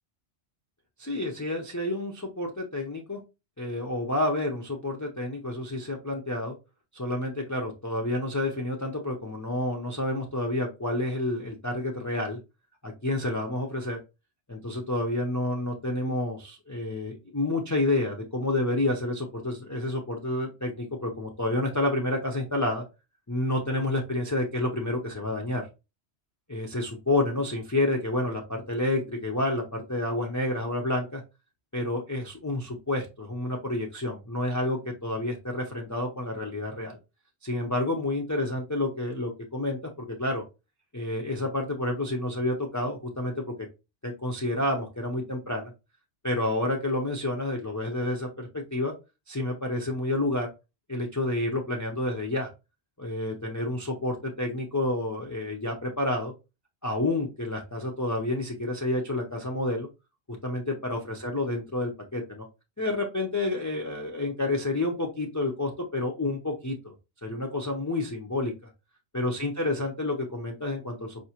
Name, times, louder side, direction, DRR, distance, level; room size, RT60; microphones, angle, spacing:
voice 1, 1.0-3.2 3.6-6.6 6.9-12.4 12.8-14.0 14.5-22.8 23.3-25.7 26.5-31.2 31.7-37.0 37.4-40.4 40.9-43.3 44.0-45.7 46.2-48.9 49.3-50.5 50.9-52.5 53.0-56.3 56.8-59.9 60.4-62.4 62.8-66.9 67.2-68.5 69.1-71.2, left 2 dB, 25° left, 0 dB, 0.4 m, -29 dB
4.6 x 2.7 x 2.8 m, 0.27 s
omnidirectional pair, 1.2 m